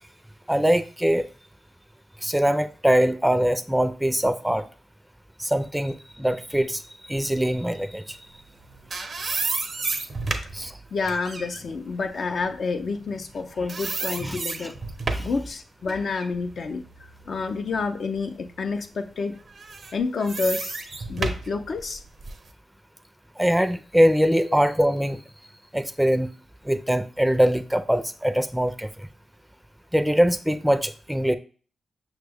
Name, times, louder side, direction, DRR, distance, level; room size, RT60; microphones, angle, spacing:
voice 1, 0.5-1.3 2.2-4.6 5.4-6.8 7.1-8.2 10.5-10.8 14.2-14.4 15.1-15.3 23.4-25.2 25.7-26.3 26.6-29.1 29.9-31.3, equal, 10° right, 10 dB, 0.5 m, -22 dB
sound 1, 8.5-13.4 13.7-15.4 15.9-17.8 18.3-18.4 19.5-22.5, right 3 dB, 55° right, 0.6 m, -32 dB
voice 2, 10.9-14.8 15.2-16.8 17.3-19.4 19.9-20.8 21.1-22.0, left 4 dB, 65° left, 6 dB, 0.5 m, -28 dB
5.9 x 2.2 x 3.4 m, 0.40 s
supercardioid pair, 40°, 0 cm